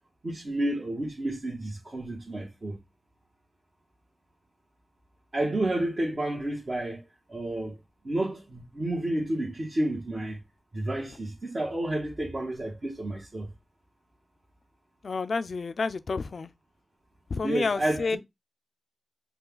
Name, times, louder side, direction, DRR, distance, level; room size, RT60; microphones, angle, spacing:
voice 1, 0.2-2.8 5.3-7.0 7.3-7.8 8.0-10.4 10.7-13.5 17.4-18.2, right 1 dB, 50° right, 1.5 m, -30 dB
voice 2, 15.0-16.5 17.3-18.2, left 4 dB, 75° left, 0.4 m, -29 dB
5.5 x 2.4 x 3.7 m
cardioid pair, 55°, 0 cm